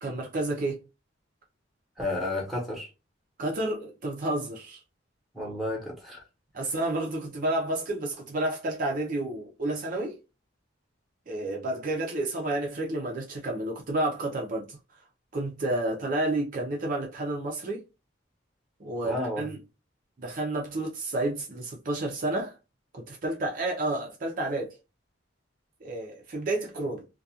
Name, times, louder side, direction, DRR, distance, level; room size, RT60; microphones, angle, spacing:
voice 1, 0.0-0.8 3.4-4.8 6.5-10.2 11.3-14.8 15.3-17.8 18.8-19.6 20.2-22.6 22.9-24.8 25.8-27.0, right 2 dB, 45° right, 0.5 m, -30 dB
voice 2, 2.0-2.9 5.3-6.2 19.0-19.5, left 2 dB, ahead, 0.9 m, -31 dB
2.3 x 2.2 x 2.7 m
head